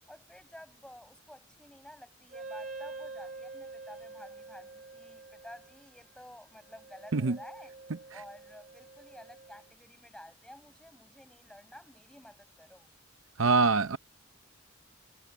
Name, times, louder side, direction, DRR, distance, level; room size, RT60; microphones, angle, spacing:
voice 1, 0.1-7.7 8.1-12.9, left 1 dB, 5° left, 7.6 m, -52 dB
Wind instrument woodwind instrument, 2.3-9.7, right 3 dB, 40° right, 2.5 m, -47 dB
voice 2, 13.4-14.0, right 4 dB, 80° right, 0.7 m, -24 dB
head